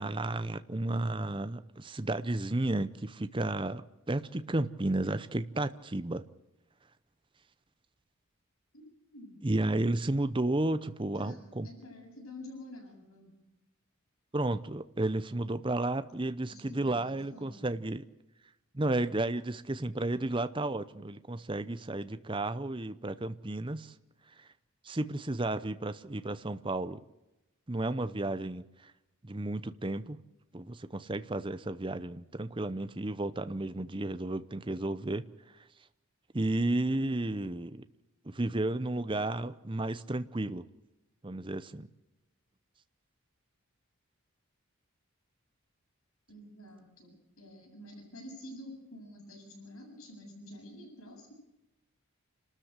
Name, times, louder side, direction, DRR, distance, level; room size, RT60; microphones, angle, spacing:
voice 1, 0.0-6.3 9.4-11.7 14.3-18.0 18.7-23.9 24.4-24.5 24.8-27.0 27.7-28.9 29.2-30.2 30.5-35.3 35.5-35.6 36.3-37.8 38.2-40.7 41.2-41.9, right 2 dB, 20° right, 12 dB, 0.7 m, -32 dB
voice 2, 8.7-9.4 11.1-13.3 16.5-17.7 46.3-51.3, left 1 dB, 70° left, 0 dB, 7.9 m, -49 dB
29.0 x 13.5 x 8.1 m, 0.96 s
head